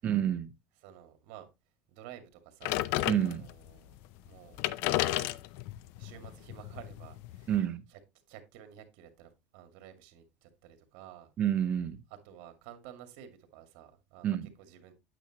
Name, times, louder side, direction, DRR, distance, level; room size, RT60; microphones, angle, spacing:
voice 1, 0.0-0.5 3.1-3.5 7.5-7.8 11.4-12.0 14.2-14.5, right 10 dB, 35° right, 0.9 m, -29 dB
voice 2, 0.8-1.5 1.9-2.8 3.3-4.0 4.2-5.3 6.0-7.5 7.9-8.0 8.3-11.3 12.2-14.9, right 10 dB, 70° right, 2.2 m, -52 dB
sound 1, 2.6-3.7 4.3-4.4 4.5-7.6, left 16 dB, 65° left, 0.5 m, -33 dB
9.0 x 8.0 x 2.9 m
supercardioid pair, 135°, 4 cm